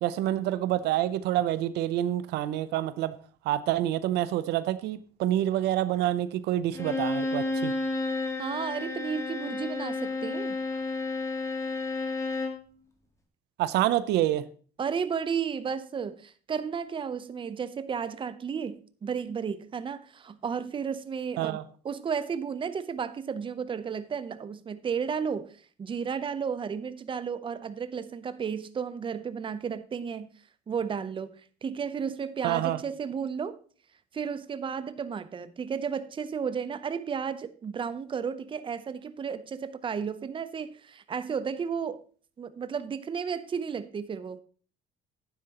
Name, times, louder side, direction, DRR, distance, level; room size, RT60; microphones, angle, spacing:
voice 1, 0.0-3.2 3.4-7.7 13.6-14.4 21.4-21.6 32.4-32.8, right 13 dB, 80° right, 0.6 m, -27 dB
Bowed string instrument, 6.7-12.7, left 3 dB, 20° left, 1.6 m, -31 dB
voice 2, 8.4-10.6 14.8-30.3 30.7-31.3 31.6-33.6 34.1-42.0 42.4-44.4, right 6 dB, 30° right, 0.7 m, -33 dB
11.5 x 9.7 x 2.9 m
cardioid pair, 110°, 17 cm